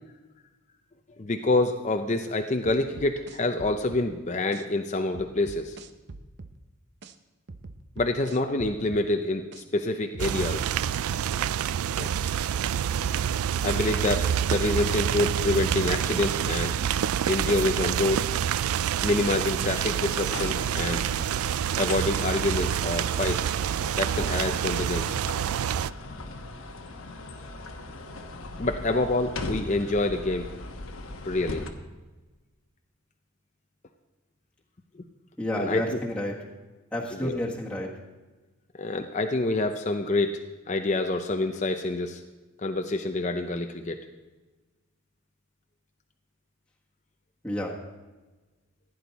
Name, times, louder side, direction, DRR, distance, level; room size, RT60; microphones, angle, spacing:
voice 1, 1.2-5.8 8.0-10.7 12.0-12.1 13.6-16.8 17.2-18.2 19.0-21.1 21.8-23.5 24.0-25.2 28.6-30.5 31.2-31.6 35.6-36.0 37.2-37.4 38.7-40.4 40.7-42.2 42.6-44.0, left 2 dB, 35° left, 5 dB, 0.6 m, -27 dB
sound 1, 2.6-4.1 4.5-4.6 5.1-6.6 7.0-7.1 7.5-9.1 9.5-9.6 10.1-11.6 12.0-12.2, right 3 dB, 50° right, 0.7 m, -43 dB
sound 2, 10.2-25.9, right 9 dB, 90° right, 0.3 m, -27 dB
sound 3, 19.7-31.7, left 2 dB, 75° left, 1.2 m, -39 dB
voice 2, 35.4-36.3 36.9-37.9 47.4-47.7, left 1 dB, 5° left, -4 dB, 1.5 m, -30 dB
15.5 x 9.6 x 4.1 m, 1.2 s
head